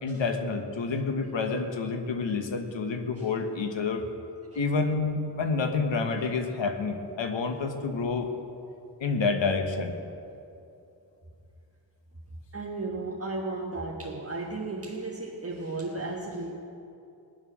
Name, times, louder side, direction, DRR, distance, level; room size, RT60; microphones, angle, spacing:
voice 1, 0.0-4.0 4.5-8.3 9.0-10.0, left 4 dB, 85° left, 5 dB, 1.4 m, -28 dB
voice 2, 12.5-16.5, right 3 dB, 30° right, -3 dB, 1.4 m, -34 dB
21.0 x 7.5 x 6.2 m, 2.7 s
wide cardioid pair, 80°, 44 cm